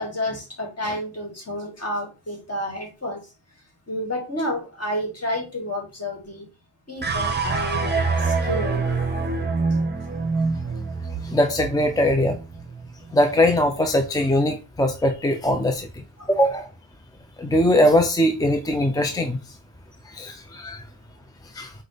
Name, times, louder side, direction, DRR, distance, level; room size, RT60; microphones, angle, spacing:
voice 1, 0.0-3.2 3.9-6.5 6.9-8.9 16.2-16.3, left 1 dB, 30° left, 1.6 m, -30 dB
sound 1, 7.0-13.4, right 4 dB, 20° right, 0.8 m, -26 dB
voice 2, 11.2-12.4 13.1-16.7 17.4-19.4 20.1-20.8 21.5-21.7, left 1 dB, 10° left, 0.4 m, -21 dB
4.9 x 2.1 x 3.9 m
wide cardioid pair, 100°, 46 cm